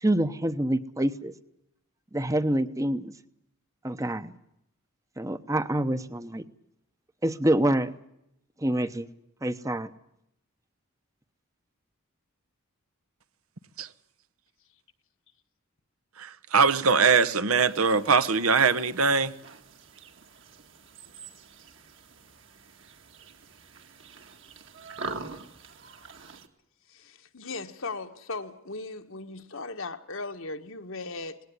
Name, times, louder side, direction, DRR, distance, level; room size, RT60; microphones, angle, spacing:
voice 1, 0.0-1.3 2.1-3.1 3.8-4.4 5.2-6.5 7.2-7.9 8.6-9.1 9.4-9.9, right 1 dB, 15° right, 0.9 m, -26 dB
voice 2, 16.2-19.3, right 5 dB, 80° right, 1.1 m, -22 dB
sound 1, 17.6-26.5, right 3 dB, 60° right, 1.9 m, -45 dB
voice 3, 26.9-31.4, left 3 dB, 65° left, 1.5 m, -37 dB
19.5 x 17.5 x 9.8 m
head